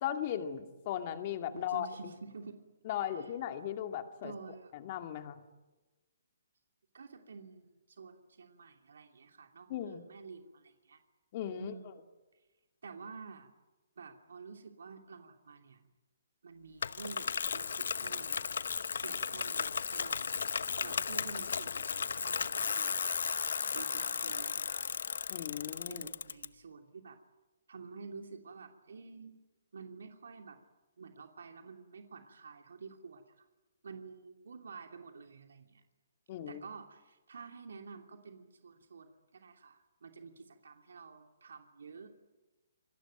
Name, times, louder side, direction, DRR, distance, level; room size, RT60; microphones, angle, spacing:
voice 1, 0.0-1.9 2.8-4.3 4.7-5.4 9.7-10.0 11.3-11.7 25.3-26.1 36.3-36.6, left 10 dB, 35° left, 6 dB, 2.4 m, -37 dB
voice 2, 1.5-2.7 3.2-3.3 4.2-4.7 6.9-11.0 11.6-12.0 12.8-13.5 14.0-15.8 16.4-18.4 19.0-23.0 23.7-25.0 25.9-27.2 27.7-29.4 29.7-30.6 31.0-33.5 33.8-35.8 36.5-42.1, right 5 dB, 75° right, 4 dB, 2.9 m, -50 dB
Bicycle, 16.8-26.4, left 6 dB, 70° left, 1.0 m, -35 dB
27.0 x 20.5 x 9.2 m, 1.1 s
hypercardioid pair, 160°, 0 cm